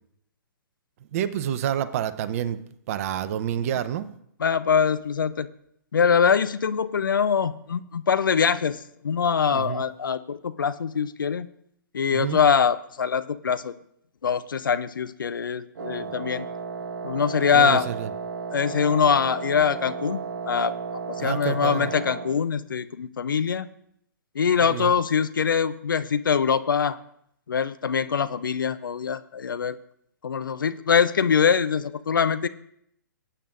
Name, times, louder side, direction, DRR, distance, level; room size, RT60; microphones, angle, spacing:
voice 1, 1.1-2.6 2.9-4.1 9.5-9.8 12.1-12.4 16.0-16.1 17.5-18.1 21.2-21.9 24.6-24.9, right 10 dB, 45° right, 13 dB, 0.7 m, -28 dB
voice 2, 4.4-5.5 5.9-8.8 9.0-11.5 11.9-13.7 14.2-16.5 17.0-17.9 18.5-20.7 21.2-23.7 24.4-27.0 27.5-29.8 30.2-32.5, left 6 dB, 75° left, 14 dB, 0.5 m, -23 dB
Wind instrument woodwind instrument, 15.8-22.4, right 5 dB, 60° right, 1.4 m, -34 dB
19.0 x 8.7 x 2.5 m, 0.72 s
figure-of-eight pair, 125°, 11 cm